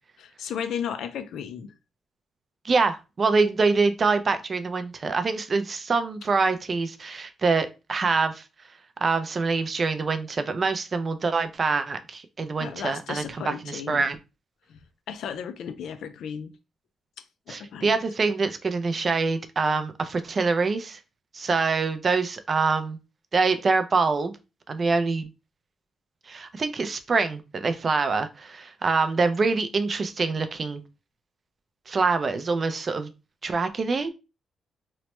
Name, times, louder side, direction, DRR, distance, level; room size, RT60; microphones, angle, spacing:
voice 1, 0.2-1.7 12.6-14.1 14.7-14.8 15.1-16.6 17.2-18.0, left 8 dB, 80° left, 0.4 m, -35 dB
voice 2, 2.6-8.4 9.0-14.2 17.5-21.0 21.3-23.0 23.3-24.3 24.7-25.3 26.3-30.8 31.9-33.1 33.4-34.1, right 4 dB, 35° right, 0.4 m, -25 dB
3.0 x 2.1 x 2.9 m
cardioid pair, 125°, 0 cm